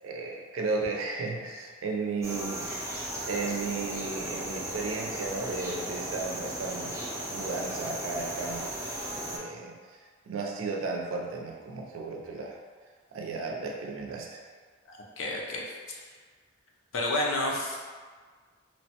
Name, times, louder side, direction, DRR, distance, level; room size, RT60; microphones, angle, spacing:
voice 1, 0.0-2.7 3.3-7.0 7.3-8.7 9.3-9.8 10.3-12.6 13.1-14.4, right 3 dB, 85° right, 1 dB, 0.4 m, -34 dB
sound 1, 2.2-9.4, right 1 dB, 15° right, 0.4 m, -36 dB
voice 2, 14.9-16.0 16.9-17.9, left 1 dB, 75° left, -2 dB, 0.5 m, -31 dB
3.0 x 2.1 x 2.8 m, 1.5 s
head